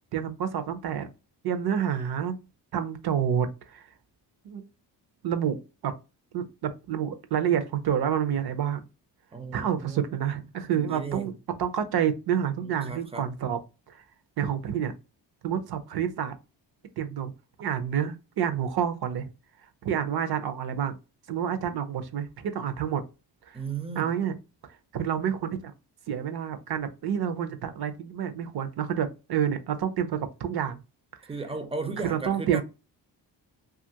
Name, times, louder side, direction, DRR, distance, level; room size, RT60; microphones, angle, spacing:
voice 1, 0.1-1.1 1.4-2.4 2.7-3.8 4.4-4.6 5.2-5.6 5.8-5.9 6.3-8.9 9.5-11.3 11.6-13.6 13.9-14.0 14.4-14.9 15.4-16.3 17.0-17.3 17.6-19.3 19.8-21.0 21.3-23.0 23.5-23.6 24.0-24.4 24.9-25.7 26.1-30.8 32.0-32.6, right 8 dB, 60° right, 0.6 m, -28 dB
voice 2, 9.3-10.0 10.7-11.3 12.6-13.3 23.5-24.1 31.3-32.6, right 4 dB, 15° right, 0.4 m, -35 dB
2.8 x 2.5 x 2.7 m
cardioid pair, 110°, 43 cm